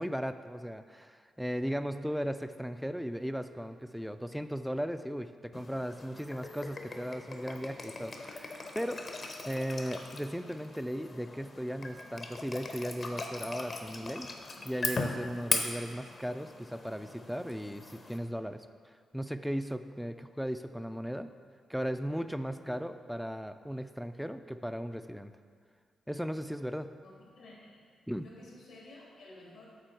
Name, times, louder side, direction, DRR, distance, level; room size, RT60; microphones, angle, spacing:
voice 1, 0.0-14.3 14.6-21.3 21.7-25.3 26.1-26.9 28.1-28.3, equal, ahead, 10 dB, 0.4 m, -37 dB
Pouring whisky, 5.5-18.2, left 3 dB, 50° left, 0.8 m, -39 dB
voice 2, 27.0-27.8 28.2-29.7, left 2 dB, 80° left, -3 dB, 1.8 m, -53 dB
7.6 x 4.1 x 4.7 m, 2.1 s
hypercardioid pair, 40°, 0 cm